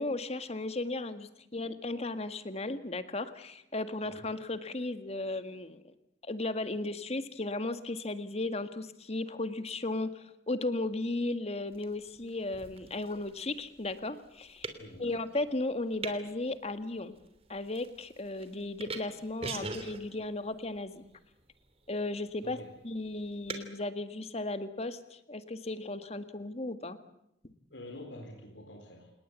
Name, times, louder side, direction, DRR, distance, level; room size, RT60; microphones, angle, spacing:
voice 1, 0.0-5.9 6.2-14.7 15.0-17.1 17.5-21.0 21.9-22.6 22.8-27.0 27.4-27.5, left 2 dB, 35° left, 10 dB, 1.8 m, -35 dB
sound 1, 11.7-23.7, right 3 dB, 35° right, 3.1 m, -46 dB
voice 2, 14.8-15.1 22.4-22.7 27.7-29.1, left 1 dB, 90° left, 2 dB, 4.5 m, -46 dB
29.0 x 19.5 x 8.3 m, 0.79 s
head